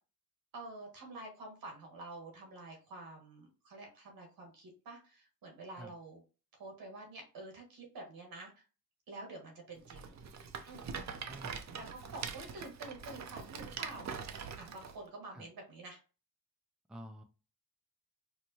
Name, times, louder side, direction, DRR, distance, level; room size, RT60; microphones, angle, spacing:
voice 1, 0.5-6.2 6.5-8.6 9.1-10.1 10.7-10.9 11.8-14.1 14.6-16.0, right 2 dB, 75° right, 1 dB, 1.4 m, -48 dB
Rattle, 9.9-15.0, right 6 dB, 50° right, 0.5 m, -43 dB
voice 2, 11.3-11.7 15.3-15.5 16.9-17.2, equal, ahead, 6 dB, 0.4 m, -49 dB
4.5 x 2.1 x 2.7 m, 0.35 s
cardioid pair, 75°, 35 cm